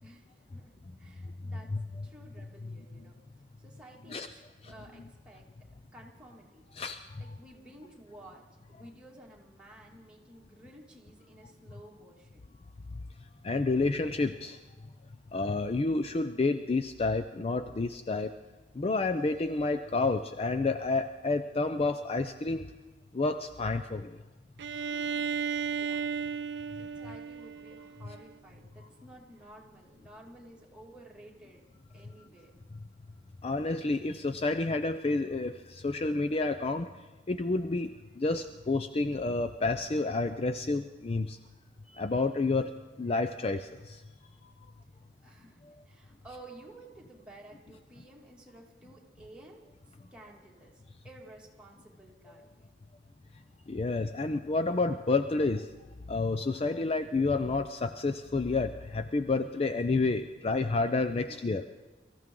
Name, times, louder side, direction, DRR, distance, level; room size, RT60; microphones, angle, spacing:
voice 1, 0.0-1.7 2.0-3.2 3.6-4.4 4.6-5.5 5.9-6.7 7.2-12.4 24.7-26.4 26.8-31.6 31.9-32.5 45.2-45.6 45.9-52.7 61.3-61.7, right 1 dB, 5° right, -3 dB, 2.3 m, -53 dB
voice 2, 6.8-7.3 13.4-14.6 15.3-18.3 18.7-22.7 23.1-24.2 33.4-36.9 37.3-41.4 41.9-42.7 43.0-44.0 45.6-45.8 53.7-55.7 56.1-61.6, left 3 dB, 35° left, 9 dB, 0.5 m, -30 dB
Bowed string instrument, 24.6-28.3, right 6 dB, 65° right, 0.4 m, -34 dB
23.5 x 14.5 x 3.8 m, 1.2 s
head